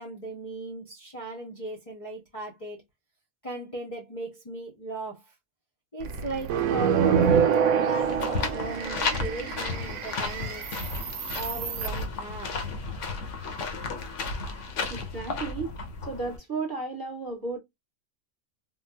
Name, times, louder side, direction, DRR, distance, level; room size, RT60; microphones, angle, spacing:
voice 1, 0.0-2.8 3.4-5.3 5.9-7.4 7.8-10.7 11.3-12.5, right 2 dB, 30° left, 0.7 m, -37 dB
sound 1, 6.0-12.0, right 7 dB, 85° right, 1.0 m, -26 dB
English Countryside (Suffolk) - Walking on a quiet path, 8.0-16.4, left 4 dB, 70° left, 1.1 m, -33 dB
voice 2, 14.9-15.8 16.0-17.6, right 4 dB, 15° right, 1.2 m, -33 dB
3.7 x 2.3 x 2.2 m
omnidirectional pair, 1.4 m